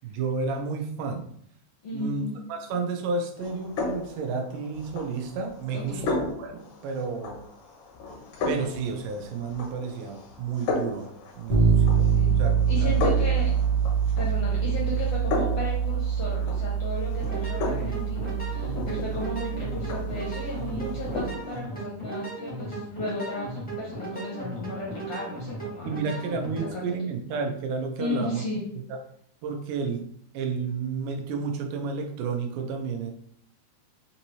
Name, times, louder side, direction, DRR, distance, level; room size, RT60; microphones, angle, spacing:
voice 1, 0.0-1.3 1.9-7.4 8.5-11.1 11.4-12.1 12.4-13.2 25.9-28.4 28.9-29.0 29.4-33.1, right 4 dB, 90° right, 4 dB, 2.3 m, -31 dB
voice 2, 1.8-2.4 5.7-6.1 11.6-11.7 12.1-12.4 12.7-13.5 14.2-25.9 26.7-27.0 28.0-28.6, left 2 dB, 70° left, -4 dB, 1.4 m, -34 dB
sound 1, 3.4-21.6, left 3 dB, 85° left, 2.5 m, -35 dB
sound 2, 11.5-21.3, right 7 dB, 55° right, 1.0 m, -25 dB
sound 3, 17.1-26.7, right 2 dB, 10° left, 0.4 m, -37 dB
6.3 x 2.7 x 3.0 m, 0.65 s
omnidirectional pair, 3.6 m